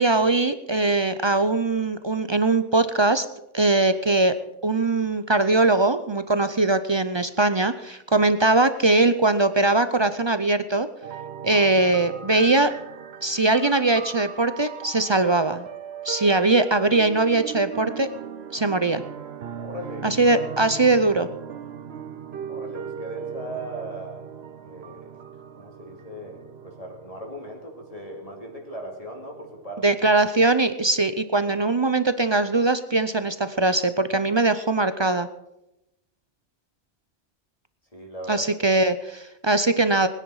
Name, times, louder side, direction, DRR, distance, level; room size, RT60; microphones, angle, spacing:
voice 1, 0.0-3.3 3.5-4.4 4.6-10.9 11.4-12.7 13.2-15.7 16.0-18.1 18.5-19.0 20.0-21.3 29.8-35.3 38.3-40.1, right 2 dB, 35° right, 11 dB, 0.4 m, -21 dB
sound 1, 11.0-29.9, right 7 dB, 60° right, 1.1 m, -38 dB
voice 2, 19.6-20.1 22.5-24.2 24.6-25.1 25.6-30.0 37.9-38.5, equal, 30° left, 0 dB, 2.6 m, -38 dB
21.5 x 9.9 x 4.8 m, 0.91 s
omnidirectional pair, 1.3 m